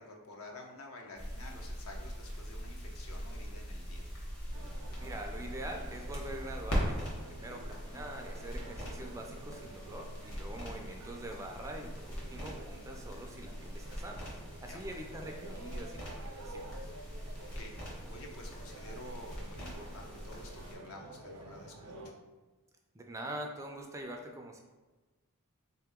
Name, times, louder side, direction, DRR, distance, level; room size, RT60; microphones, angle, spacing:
voice 1, 0.0-4.1 14.7-14.8 17.4-22.2, left 1 dB, 65° left, 1 dB, 0.7 m, -50 dB
sound 1, 1.2-20.7, equal, 90° left, 1.2 m, -41 dB
sound 2, 4.5-22.1, right 2 dB, 80° right, 0.6 m, -51 dB
voice 2, 5.0-16.9 22.9-24.6, right 1 dB, 15° right, 2 dB, 0.3 m, -44 dB
3.8 x 2.9 x 3.5 m, 1.2 s
head